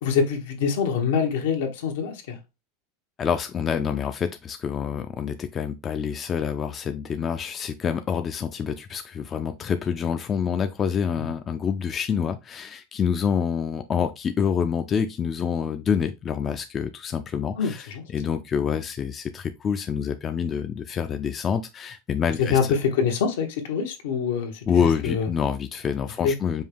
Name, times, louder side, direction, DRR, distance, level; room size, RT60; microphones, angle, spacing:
voice 1, 0.0-2.4 11.2-11.3 17.6-18.0 22.4-25.3 26.2-26.3, left 6 dB, 85° left, 1.1 m, -25 dB
voice 2, 3.2-22.6 24.7-26.6, left 7 dB, 30° left, 0.4 m, -27 dB
5.4 x 2.2 x 3.4 m
supercardioid pair, 130°, 0 cm